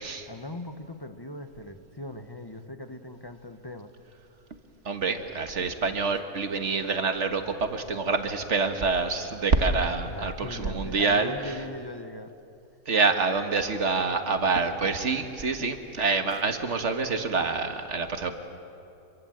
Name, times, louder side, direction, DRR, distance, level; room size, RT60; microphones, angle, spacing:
voice 1, 0.3-3.9 10.1-12.3, left 1 dB, 20° left, 8 dB, 0.9 m, -39 dB
voice 2, 4.8-11.3 12.9-18.3, right 4 dB, 50° right, 7 dB, 1.6 m, -26 dB
26.5 x 23.0 x 7.8 m, 2.8 s
omnidirectional pair, 1.6 m